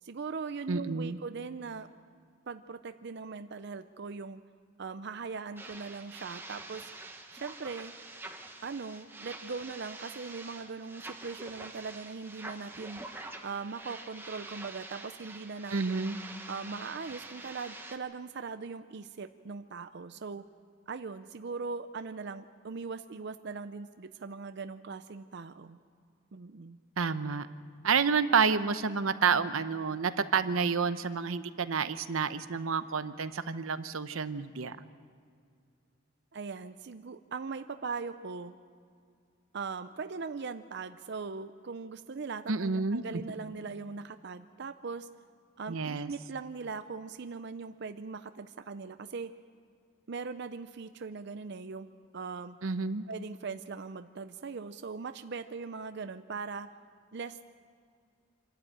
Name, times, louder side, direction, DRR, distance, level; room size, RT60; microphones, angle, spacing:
voice 1, 0.0-1.9 2.5-4.4 4.8-6.9 7.3-7.9 8.6-13.0 13.4-16.0 16.5-20.5 20.9-25.8 26.3-26.8 36.3-38.6 39.5-45.1 45.6-49.3 50.1-51.9 52.1-52.6 53.1-56.7 57.1-57.5, right 4 dB, 55° right, 10 dB, 0.5 m, -40 dB
voice 2, 0.7-1.2 15.7-16.2 27.0-27.5 27.8-34.8 42.5-43.0 45.7-46.1 52.6-53.0, right 5 dB, 85° right, 12 dB, 0.8 m, -29 dB
sound 1, 5.6-18.0, right 2 dB, 10° right, 1.2 m, -46 dB
26.0 x 12.5 x 8.9 m, 2.2 s
head